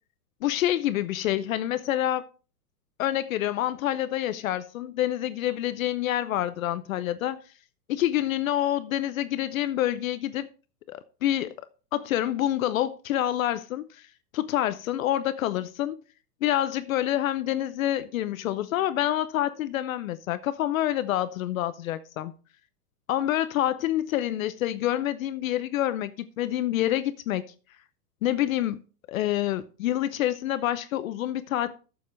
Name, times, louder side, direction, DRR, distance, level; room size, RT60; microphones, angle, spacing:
voice 1, 0.4-2.2 3.0-7.4 7.9-10.5 10.9-11.5 11.9-14.1 14.3-16.0 16.4-22.3 23.1-27.4 28.2-28.8 29.1-31.7, left 13 dB, 60° left, 0.7 m, -27 dB
12.5 x 7.1 x 3.3 m
hypercardioid pair, 140°, 47 cm